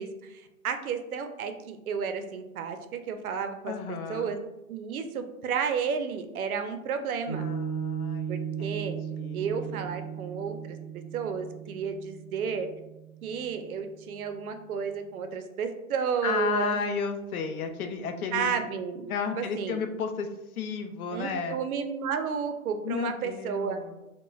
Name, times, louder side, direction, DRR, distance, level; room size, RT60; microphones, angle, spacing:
voice 1, 0.0-4.4 4.7-7.4 8.3-9.0 9.3-12.7 13.2-16.8 18.3-19.1 19.4-19.8 21.1-23.8, right 6 dB, 80° right, 8 dB, 0.5 m, -32 dB
voice 2, 3.6-4.4 7.4-10.0 16.2-18.6 19.1-20.3 20.6-21.6 22.8-23.9, left 5 dB, 80° left, 6 dB, 0.5 m, -33 dB
Piano, 7.3-13.9, right 8 dB, 45° left, 0.7 m, -36 dB
3.0 x 2.1 x 2.3 m, 0.97 s
hypercardioid pair, 165°, 43 cm